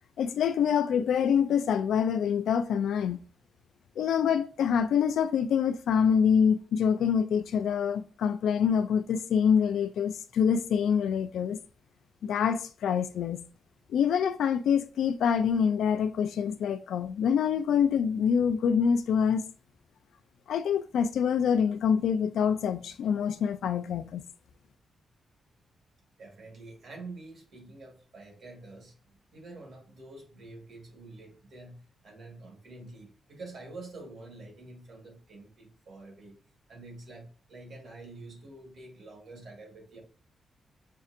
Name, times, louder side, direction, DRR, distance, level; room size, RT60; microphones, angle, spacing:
voice 1, 0.2-3.2 4.0-11.6 12.2-13.4 13.9-19.4 20.5-24.2, left 7 dB, 85° left, 0.3 m, -26 dB
voice 2, 26.2-36.4 36.7-40.0, right 2 dB, 65° right, 1.7 m, -47 dB
5.4 x 2.4 x 2.6 m
wide cardioid pair, 140°, 0 cm